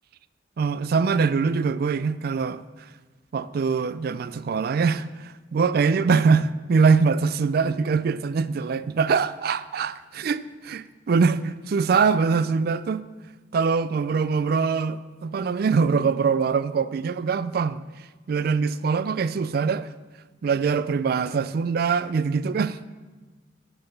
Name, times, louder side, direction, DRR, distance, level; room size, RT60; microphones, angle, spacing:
voice 1, 0.6-2.6 3.3-5.1 5.5-10.4 11.1-13.0 13.5-17.8 18.3-19.8 20.4-22.9, right 5 dB, 55° right, 0.4 m, -23 dB
7.8 x 6.7 x 6.8 m
head